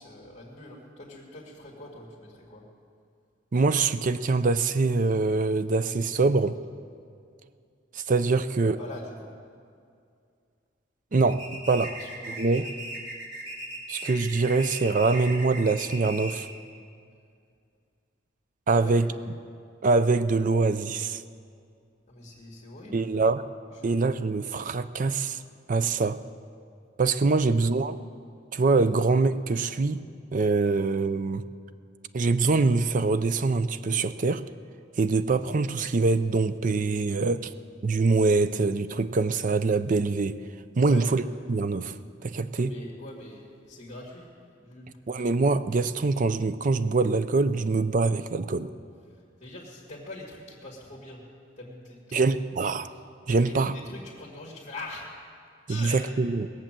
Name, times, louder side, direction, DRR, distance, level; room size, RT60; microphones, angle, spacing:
voice 1, 0.0-2.6 8.6-9.3 11.8-12.7 18.7-19.1 22.1-23.1 23.7-24.0 27.3-27.4 40.7-41.1 42.5-44.3 44.6-44.9 49.4-51.2 51.6-52.3 53.3-55.1 55.7-56.0, left 2 dB, 35° left, -5 dB, 2.0 m, -43 dB
voice 2, 3.5-6.6 7.9-8.8 11.1-11.9 12.4-12.7 13.9-16.5 18.7-19.1 19.8-21.2 22.9-23.4 23.8-25.4 25.7-26.2 27.0-28.0 28.5-30.0 30.3-31.4 32.1-34.4 35.0-37.5 37.8-40.4 40.8-41.2 41.5-41.9 42.2-42.7 45.1-48.7 52.1-52.9 53.3-53.7 55.7-56.5, right 3 dB, 40° right, 13 dB, 0.4 m, -24 dB
sound 1, 11.3-16.5, right 1 dB, 60° right, 2.6 m, -38 dB
19.5 x 7.4 x 7.5 m, 2.3 s
head